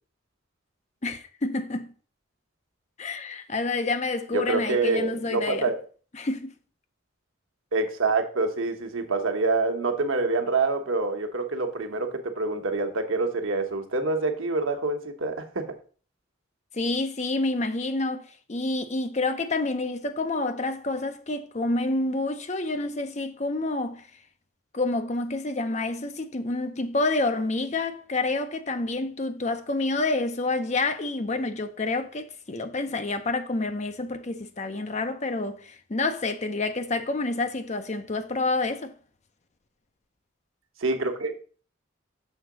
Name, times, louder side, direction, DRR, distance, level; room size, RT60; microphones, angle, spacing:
voice 1, 1.0-1.9 3.0-5.7 6.2-6.5 16.7-24.1 24.7-38.9, left 2 dB, 35° left, 0.6 m, -28 dB
voice 2, 4.3-5.8 7.7-15.8 40.8-41.4, right 3 dB, 85° right, 1.1 m, -26 dB
6.5 x 3.8 x 6.1 m
head